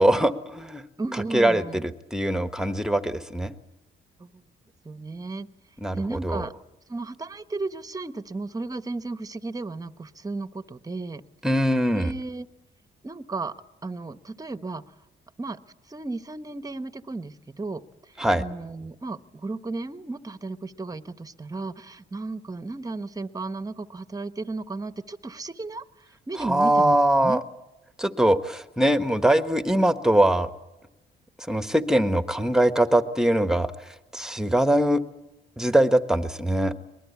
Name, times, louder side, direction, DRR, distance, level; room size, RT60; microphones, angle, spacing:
voice 1, 0.0-0.8 1.3-3.5 5.8-6.4 11.4-12.1 18.2-18.4 26.4-27.4 28.0-30.5 31.5-33.7 34.1-35.0 35.6-36.7, right 1 dB, 5° right, 10 dB, 1.3 m, -22 dB
voice 2, 1.0-1.8 4.2-4.4 4.8-5.5 5.9-6.5 6.9-11.2 11.9-12.5 13.0-13.5 13.8-14.8 15.4-15.6 15.9-27.4, right 3 dB, 20° right, 12 dB, 1.1 m, -34 dB
23.0 x 20.5 x 8.4 m, 0.97 s
cardioid pair, 90°, 20 cm